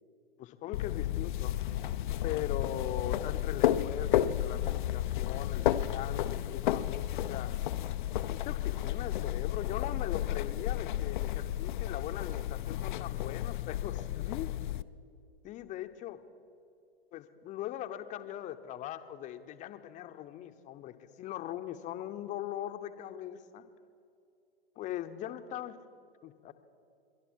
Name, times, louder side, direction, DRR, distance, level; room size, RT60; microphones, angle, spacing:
voice 1, 0.4-1.6 2.2-7.5 8.3-14.5 15.4-16.2 17.1-23.6 24.8-25.8 26.2-26.5, left 12 dB, 25° left, 9 dB, 0.8 m, -40 dB
sound 1, 0.7-14.8, left 12 dB, 50° left, 0.5 m, -32 dB
22.5 x 12.0 x 4.6 m, 2.6 s
figure-of-eight pair, 105°, 32 cm